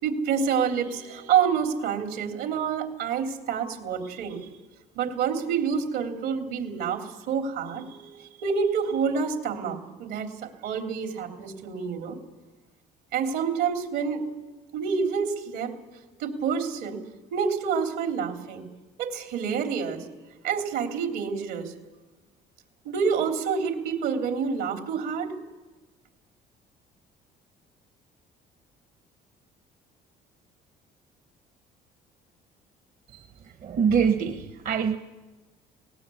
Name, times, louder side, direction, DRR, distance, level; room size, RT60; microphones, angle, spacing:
voice 1, 0.0-4.5 4.9-10.3 10.6-12.2 13.1-14.2 14.7-15.8 16.2-17.0 17.3-18.6 19.0-20.0 20.4-21.7 22.8-25.3, right 6 dB, 90° right, 4 dB, 3.1 m, -28 dB
voice 2, 33.6-35.0, right 6 dB, 55° right, 7 dB, 1.0 m, -24 dB
20.5 x 18.5 x 8.5 m, 1.2 s
cardioid pair, 110°, 17 cm